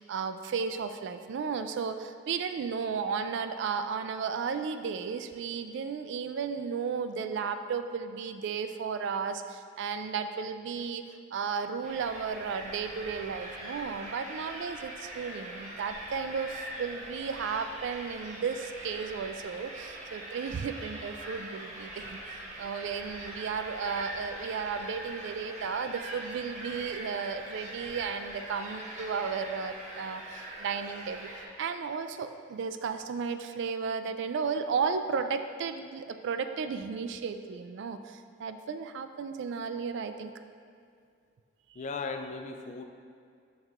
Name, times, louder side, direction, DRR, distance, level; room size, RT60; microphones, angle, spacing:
voice 1, 0.0-11.0 11.3-31.3 31.6-40.3 41.7-41.8, right 6 dB, 65° right, 9 dB, 0.3 m, -34 dB
sound 1, 11.8-31.5, right 1 dB, 40° right, 0.9 m, -42 dB
voice 2, 41.7-42.8, left 4 dB, 35° left, 6 dB, 0.3 m, -37 dB
8.0 x 5.4 x 2.5 m, 2.3 s
head